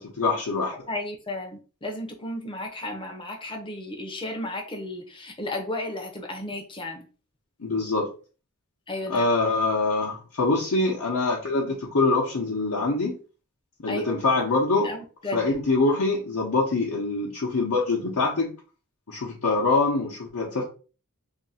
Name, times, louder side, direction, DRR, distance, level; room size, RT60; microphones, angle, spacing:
voice 1, 0.0-0.7 7.6-8.1 9.1-13.1 13.8-14.9 15.3-18.5 19.1-20.6, left 3 dB, 70° left, -2 dB, 0.8 m, -24 dB
voice 2, 0.9-7.0 8.9-9.3 13.9-14.1 14.8-15.5, left 1 dB, 20° left, 3 dB, 0.7 m, -33 dB
2.8 x 2.6 x 4.1 m, 0.37 s
head